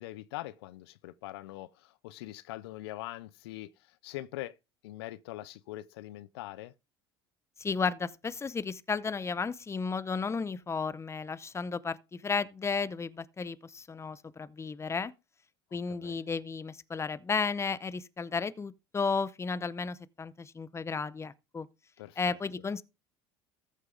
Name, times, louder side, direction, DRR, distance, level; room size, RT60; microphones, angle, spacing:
voice 1, 0.0-4.6 4.8-6.7 15.9-16.2 22.0-22.4, left 16 dB, 80° left, 0.5 m, -43 dB
voice 2, 7.6-15.1 15.7-21.7 22.2-22.8, left 5 dB, 20° left, 0.7 m, -33 dB
14.0 x 6.4 x 3.8 m
hypercardioid pair, 75°, 13 cm